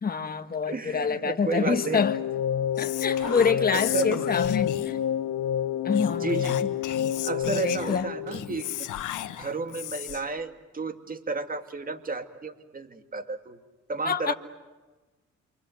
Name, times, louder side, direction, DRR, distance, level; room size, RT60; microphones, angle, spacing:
voice 1, 0.0-2.2 2.8-5.0 5.8-6.4 7.4-8.1 14.0-14.3, left 5 dB, 30° left, 7 dB, 1.4 m, -27 dB
voice 2, 0.7-2.0 3.2-4.3 6.1-6.6 7.2-8.9 9.4-13.6 13.9-14.3, right 3 dB, 30° right, 8 dB, 2.2 m, -32 dB
sound 1, 1.6-8.8, left 9 dB, 65° left, 0.8 m, -29 dB
Whispering, 2.8-5.1 5.9-10.3, left 12 dB, 85° left, 1.4 m, -35 dB
sound 2, 2.9-3.9 6.1-6.5 6.7-6.8 8.3-8.6, right 8 dB, 75° right, 1.5 m, -47 dB
28.5 x 25.5 x 7.9 m, 1.2 s
cardioid pair, 90°, 30 cm